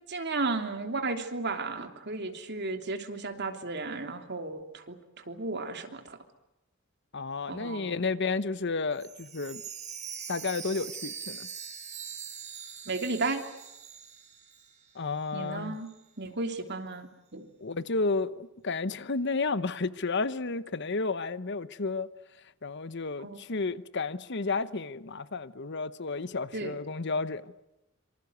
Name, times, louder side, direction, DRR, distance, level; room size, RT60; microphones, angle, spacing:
voice 1, 0.1-6.2 7.5-8.0 12.8-13.4 15.3-15.9 16.2-17.5 23.2-23.6 26.5-26.7, right 3 dB, 55° right, 3.1 m, -34 dB
voice 2, 7.1-9.6 10.3-11.5 14.9-15.8 17.6-22.1 22.6-27.4, left 3 dB, 55° left, 1.0 m, -32 dB
Chime, 8.9-14.9 15.2-15.3 15.9-16.0, right 7 dB, 35° right, 4.7 m, -42 dB
26.0 x 25.5 x 8.1 m
head